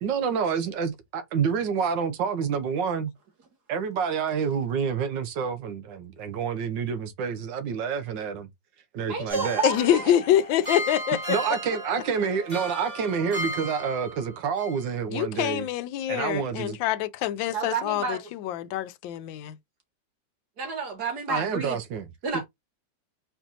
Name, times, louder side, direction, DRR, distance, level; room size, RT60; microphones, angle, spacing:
voice 1, 0.0-3.1 3.7-8.5 8.9-9.6 11.3-15.7 16.1-16.8 21.3-22.1 22.3-22.4, right 6 dB, 75° right, 1.5 m, -28 dB
voice 2, 9.1-10.1 17.5-18.2 20.6-21.8 22.2-22.4, right 4 dB, 60° right, 2.2 m, -30 dB
sound 1, 9.3-14.3 14.6-14.7, equal, 20° right, 2.7 m, -35 dB
voice 3, 9.6-11.4 15.1-19.6, left 11 dB, 85° left, 1.3 m, -25 dB
4.5 x 4.3 x 2.6 m
omnidirectional pair, 2.0 m